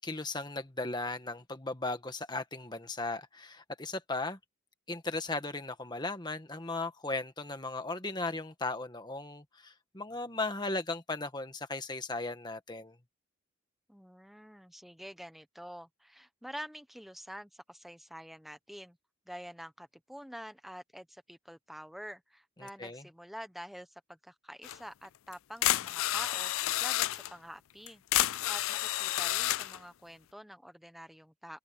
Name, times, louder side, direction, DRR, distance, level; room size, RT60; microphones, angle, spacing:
voice 1, 0.0-4.4 4.9-13.0 22.6-23.1, left 2 dB, 20° left, 1.6 m, -37 dB
voice 2, 13.9-19.0 19.3-26.5 26.8-28.0 28.5-31.6, equal, ahead, 1.1 m, -47 dB
sound 1, 24.6-24.8 25.3-25.4 25.6-27.3 27.9-29.8, left 15 dB, 75° left, 0.4 m, -30 dB
head